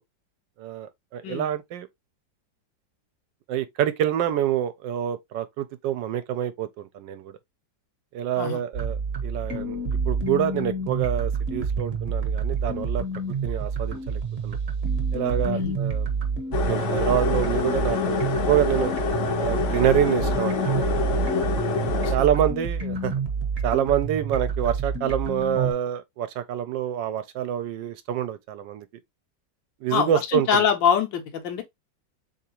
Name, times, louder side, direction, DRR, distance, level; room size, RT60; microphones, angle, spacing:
voice 1, 0.6-1.9 3.5-7.4 8.1-9.8 10.1-13.0 13.4-14.6 15.1-16.1 16.6-18.9 19.3-21.2 22.1-23.1 23.6-28.9 29.8-30.7, right 10 dB, 80° right, 1.2 m, -26 dB
sound 1, 8.7-25.7, right 4 dB, 40° right, 1.0 m, -28 dB
sound 2, 16.5-22.1, left 5 dB, 55° left, 0.8 m, -26 dB
voice 2, 29.9-31.6, left 7 dB, 80° left, 1.5 m, -24 dB
3.8 x 3.5 x 2.9 m
omnidirectional pair, 2.0 m